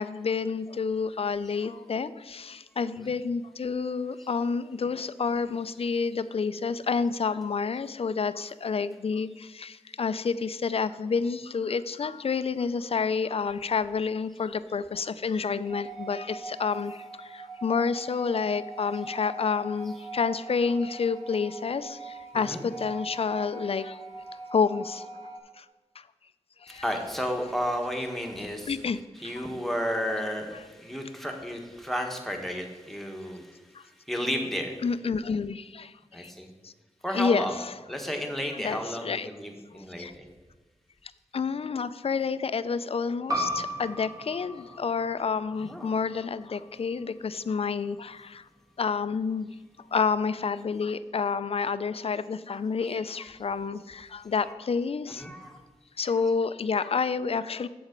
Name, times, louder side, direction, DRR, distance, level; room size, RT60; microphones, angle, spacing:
voice 1, 0.0-24.0 24.5-25.1 25.6-25.7 26.0-26.1 26.6-26.8 28.7-29.3 33.7-33.8 34.8-36.3 36.6-36.7 37.1-37.7 38.6-39.3 39.7-40.1 41.3-48.4 48.8-49.5 49.9-55.2 56.0-57.7, left 5 dB, 55° left, 14 dB, 0.4 m, -29 dB
sound 1, 15.6-25.4, right 3 dB, 85° right, 1.7 m, -42 dB
voice 2, 26.7-28.9 29.2-34.8 36.1-36.5 37.0-37.5 37.9-40.2 45.6-45.9 52.8-53.3 54.3-54.6 55.1-55.6 56.1-56.2 56.8-56.9, equal, ahead, 2 dB, 1.3 m, -33 dB
sound 2, 43.3-48.5, equal, 30° right, 1.7 m, -37 dB
7.9 x 7.2 x 5.2 m, 1.2 s
wide cardioid pair, 100°, 12 cm